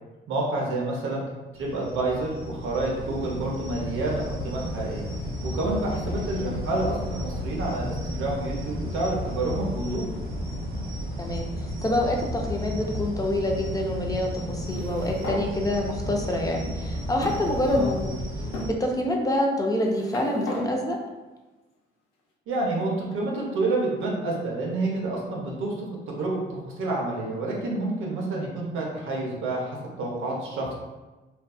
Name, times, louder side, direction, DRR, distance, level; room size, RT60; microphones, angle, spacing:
voice 1, 0.3-1.3 1.5-5.0 5.4-10.0 17.7-17.9 22.5-30.7, right 2 dB, 85° right, -2 dB, 0.7 m, -29 dB
sound 1, 1.5-18.7, equal, 50° right, 0.8 m, -33 dB
voice 2, 6.1-6.6 11.2-18.2 18.8-21.0, left 1 dB, 20° left, 0 dB, 0.4 m, -27 dB
sound 2, 14.6-15.5 16.3-16.4 17.2-18.0 18.5-18.7 19.6-20.7, left 2 dB, 90° left, 0.6 m, -36 dB
2.6 x 2.3 x 2.2 m, 1.1 s
cardioid pair, 90°, 20 cm